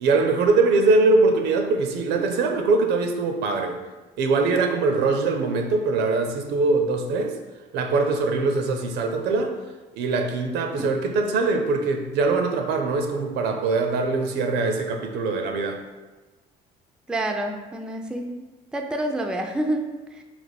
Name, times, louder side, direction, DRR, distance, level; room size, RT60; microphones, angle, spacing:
voice 1, 0.0-3.8 4.2-7.3 7.7-9.5 9.9-15.8, right 3 dB, 85° right, 4 dB, 0.5 m, -22 dB
voice 2, 17.1-18.5 18.7-20.2, right 1 dB, 5° right, 3 dB, 0.4 m, -28 dB
3.3 x 2.9 x 4.0 m, 1.2 s
cardioid pair, 110°, 17 cm